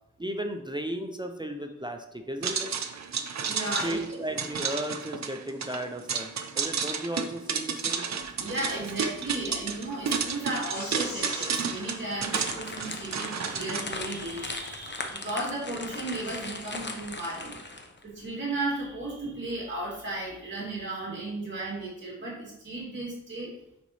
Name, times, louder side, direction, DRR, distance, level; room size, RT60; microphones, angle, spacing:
voice 1, 0.2-2.7 3.8-8.1, right 1 dB, 15° right, 5 dB, 0.5 m, -35 dB
sound 1, 2.4-13.8, right 6 dB, 65° right, 0.6 m, -32 dB
voice 2, 3.5-4.0 8.2-17.6 18.0-23.5, right 2 dB, 40° right, -5 dB, 2.6 m, -35 dB
sound 2, 10.7-13.3, left 2 dB, 70° left, 2.2 m, -43 dB
sound 3, 12.3-18.0, left 2 dB, 35° left, 0.8 m, -38 dB
9.4 x 4.0 x 3.1 m, 0.81 s
wide cardioid pair, 105°, 30 cm